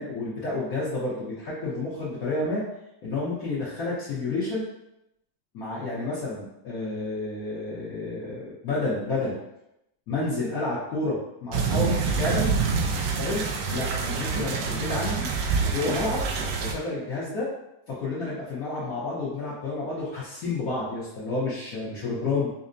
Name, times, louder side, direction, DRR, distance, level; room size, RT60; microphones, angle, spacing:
voice 1, 0.0-2.6 3.0-4.7 5.5-9.3 10.1-12.5 13.2-13.4 13.7-15.3 15.6-16.2 16.6-17.5 17.9-22.5, left 2 dB, 60° left, -9 dB, 1.1 m, -30 dB
sound 1, 11.5-16.7, right 5 dB, 75° right, 1.2 m, -26 dB
5.3 x 2.1 x 2.5 m, 0.85 s
omnidirectional pair, 2.0 m